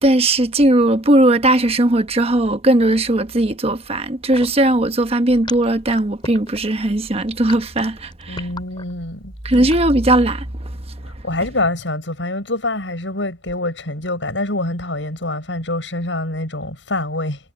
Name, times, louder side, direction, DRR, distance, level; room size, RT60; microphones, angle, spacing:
voice 1, 0.0-8.5 9.4-10.7, right 1 dB, 35° right, 1.2 m, -17 dB
sound 1, 4.3-9.9, left 3 dB, 25° left, 3.4 m, -36 dB
voice 2, 8.3-9.3 11.2-17.4, left 2 dB, 85° left, 7.8 m, -25 dB
head